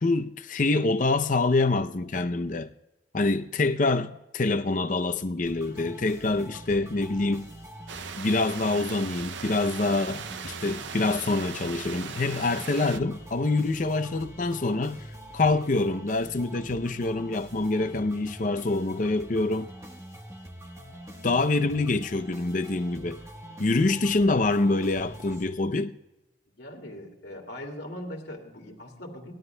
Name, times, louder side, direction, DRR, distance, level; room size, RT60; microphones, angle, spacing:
voice 1, 0.0-2.7 3.1-7.5 8.2-15.0 15.3-19.7 21.2-23.2 23.6-25.9, left 2 dB, 40° left, 0.5 m, -26 dB
sound 1, 5.5-25.4, right 1 dB, 15° right, 1.1 m, -44 dB
sound 2, 7.9-13.0, right 7 dB, 70° right, 0.5 m, -39 dB
voice 2, 26.6-29.3, left 1 dB, 55° left, 2.2 m, -40 dB
19.5 x 12.5 x 2.2 m
head